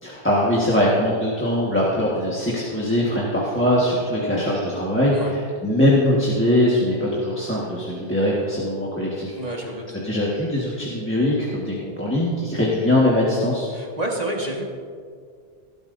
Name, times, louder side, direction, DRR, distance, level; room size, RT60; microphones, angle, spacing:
voice 1, 0.0-9.4 10.0-13.7, left 1 dB, 10° left, -6 dB, 1.5 m, -21 dB
voice 2, 9.4-9.8 13.7-14.6, right 1 dB, 40° right, -1 dB, 1.8 m, -28 dB
17.5 x 11.5 x 2.6 m, 2.2 s
omnidirectional pair, 1.1 m